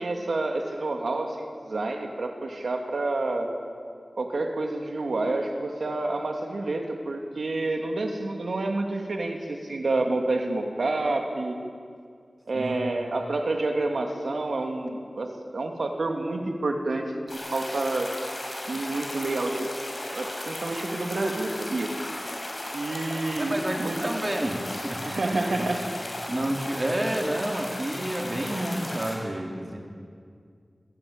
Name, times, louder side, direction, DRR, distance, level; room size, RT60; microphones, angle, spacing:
voice 1, 0.0-3.5 4.2-11.6 12.5-15.3 15.5-18.1 18.7-19.7 20.1-21.9 22.7-24.0 25.0-25.9, right 2 dB, 85° right, 3 dB, 2.7 m, -28 dB
sound 1, 17.3-29.2, left 1 dB, 45° left, 6.5 m, -36 dB
voice 2, 23.4-25.4 26.3-29.8, right 1 dB, 35° right, 1 dB, 4.1 m, -30 dB
28.5 x 16.0 x 8.9 m, 2.2 s
wide cardioid pair, 60°, 0 cm